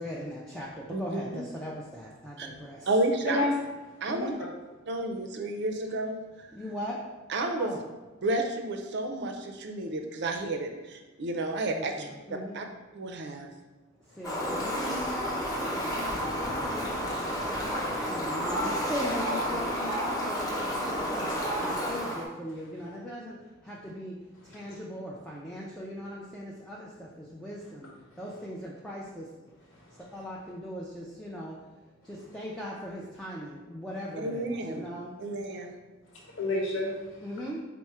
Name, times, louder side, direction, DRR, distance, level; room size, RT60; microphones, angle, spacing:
voice 1, 0.0-2.9 4.1-4.4 6.5-7.0 7.6-7.8 11.7-12.6 14.0-29.3 29.6-29.7 30.0-31.6 32.0-35.1 37.2-37.6, equal, 5° left, -6 dB, 0.4 m, -39 dB
voice 2, 0.9-1.2 2.4-2.5 2.9-3.4 4.0-4.3 4.9-6.2 7.3-7.7 8.2-12.7 12.9-13.5 19.5-19.7 34.2-34.9 35.2-35.7, right 2 dB, 60° right, 4 dB, 0.5 m, -31 dB
Fowl, 14.2-22.2, equal, 20° left, 0.8 m, -31 dB
voice 3, 36.1-37.2, left 2 dB, 75° left, -2 dB, 1.0 m, -32 dB
4.5 x 2.1 x 4.3 m, 1.2 s
head